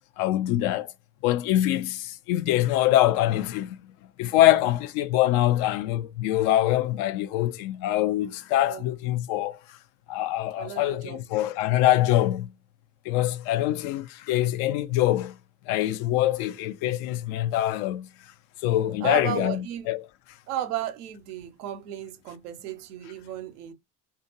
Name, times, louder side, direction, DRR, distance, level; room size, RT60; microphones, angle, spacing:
voice 1, 0.2-0.9 1.2-3.8 4.2-9.6 10.1-12.5 13.0-15.3 15.7-18.1 18.6-20.0, left 14 dB, 70° left, 0.5 m, -24 dB
voice 2, 10.6-11.3 15.8-16.2 19.0-19.9 20.5-23.7, right 11 dB, 85° right, 0.5 m, -34 dB
2.8 x 2.4 x 2.6 m
hypercardioid pair, 55°, 45 cm